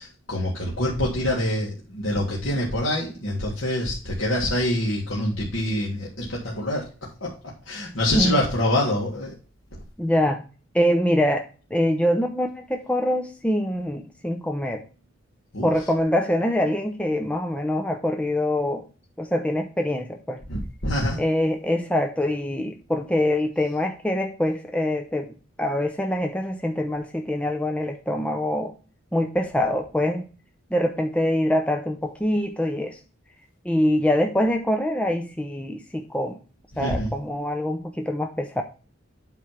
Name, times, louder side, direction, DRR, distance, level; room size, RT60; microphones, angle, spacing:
voice 1, 0.0-6.9 7.2-7.3 7.7-9.3 15.5-15.7 20.5-21.2 36.8-37.1, left 1 dB, 70° left, -4 dB, 1.8 m, -25 dB
voice 2, 10.0-10.4 10.7-11.4 11.7-14.8 15.6-18.9 19.2-20.4 21.2-25.3 25.6-28.7 29.1-30.2 30.7-33.0 33.6-36.4 36.8-38.6, left 1 dB, 5° left, 3 dB, 0.6 m, -24 dB
8.4 x 3.3 x 5.8 m, 0.35 s
head